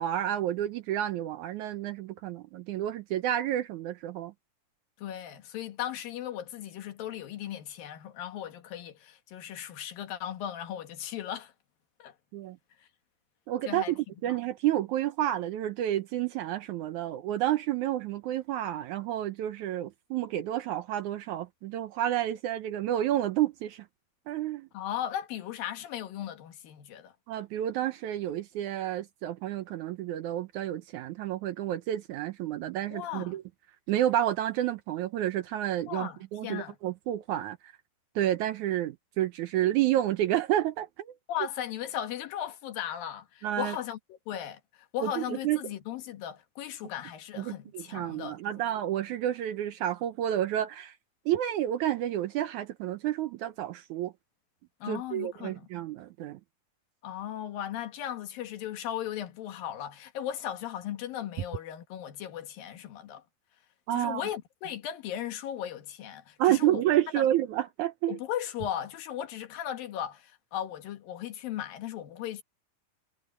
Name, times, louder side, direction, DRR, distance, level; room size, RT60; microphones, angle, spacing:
voice 1, 0.0-4.3 12.3-12.6 13.5-23.9 24.3-24.7 27.3-33.4 33.9-37.6 38.2-41.1 43.4-43.8 45.0-45.6 47.4-50.9 51.3-54.1 54.9-56.4 63.9-64.2 66.4-68.2, right 12 dB, 75° right, 1.9 m, -30 dB
voice 2, 5.0-11.5 12.0-12.1 13.7-13.9 14.3-14.4 24.7-27.1 32.9-33.4 35.9-36.8 41.3-48.6 54.8-55.7 57.0-63.2 63.9-66.8 67.2-67.3 68.1-72.4, left 11 dB, 80° left, 3.3 m, -37 dB
omnidirectional pair, 4.0 m